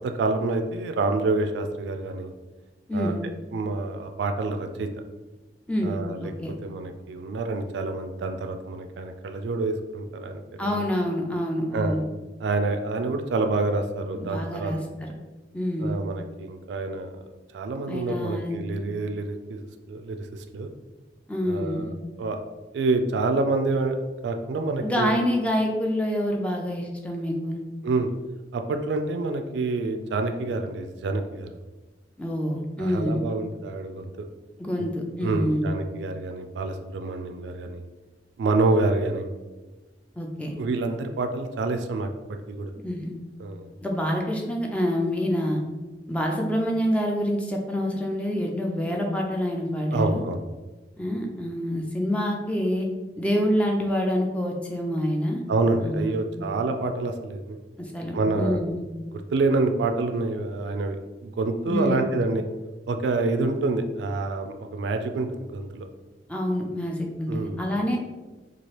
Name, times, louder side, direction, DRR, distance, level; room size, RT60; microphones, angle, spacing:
voice 1, 0.0-2.3 2.9-3.2 3.5-4.9 5.8-6.3 6.6-10.3 10.6-10.8 11.7-12.0 12.4-14.7 15.8-17.1 17.5-19.6 19.9-20.7 21.4-21.9 22.2-22.4 22.7-24.0 24.2-25.1 27.8-28.1 28.5-31.5 32.8-34.1 34.8-34.9 35.2-37.8 38.4-39.3 40.5-42.1 42.5-42.7 43.4-43.7 49.9-50.4 55.5-57.6 58.1-58.6 59.1-61.0 61.2-62.4 62.9-65.9 67.3-67.6, right 3 dB, 80° right, 6 dB, 0.3 m, -27 dB
voice 2, 5.7-6.5 10.6-12.0 14.2-15.1 15.5-16.0 17.9-18.6 21.3-21.9 24.8-27.6 32.2-33.2 34.6-35.8 40.2-40.6 42.8-43.1 43.8-45.6 46.1-50.2 51.0-52.9 53.2-55.4 55.8-56.2 57.8-58.8 61.7-62.0 66.3-68.0, equal, 5° left, 0 dB, 0.3 m, -27 dB
2.9 x 2.4 x 3.1 m, 1.2 s
head